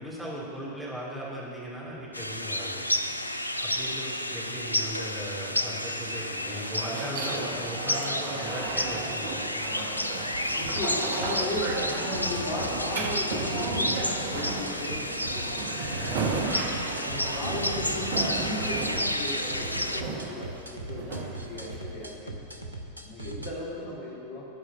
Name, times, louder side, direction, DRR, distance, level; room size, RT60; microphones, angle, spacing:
voice 1, 0.0-2.9 3.6-9.7, equal, 5° right, -7 dB, 2.9 m, -38 dB
sound 1, 2.1-20.0, left 1 dB, 85° left, 0.4 m, -31 dB
sound 2, 5.2-22.2, right 4 dB, 50° right, 1.0 m, -35 dB
sound 3, 10.3-23.5, right 2 dB, 85° right, 0.8 m, -40 dB
voice 2, 10.6-16.3 17.0-22.4 23.0-24.5, left 2 dB, 50° left, -5 dB, 2.2 m, -36 dB
12.5 x 5.0 x 7.3 m, 2.7 s
figure-of-eight pair, 90°, 0 cm